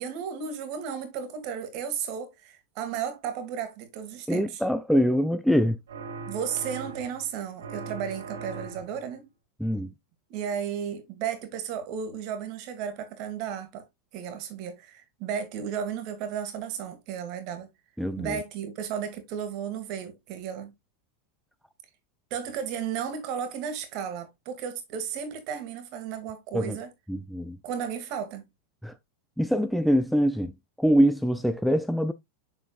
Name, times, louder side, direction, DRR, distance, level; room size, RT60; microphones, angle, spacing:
voice 1, 0.0-4.6 6.3-9.3 10.3-13.8 14.1-17.7 18.2-20.7 22.3-26.9 27.6-28.5, right 8 dB, 45° right, 2.0 m, -34 dB
voice 2, 4.3-5.8 9.6-9.9 18.0-18.4 26.5-26.8 27.1-27.6 28.8-28.9 29.4-30.5 30.8-32.1, equal, ahead, 0.4 m, -24 dB
sound 1, 5.9-7.3 7.6-9.1, right 4 dB, 60° right, 1.3 m, -39 dB
7.2 x 6.6 x 2.4 m
figure-of-eight pair, 90°, 0 cm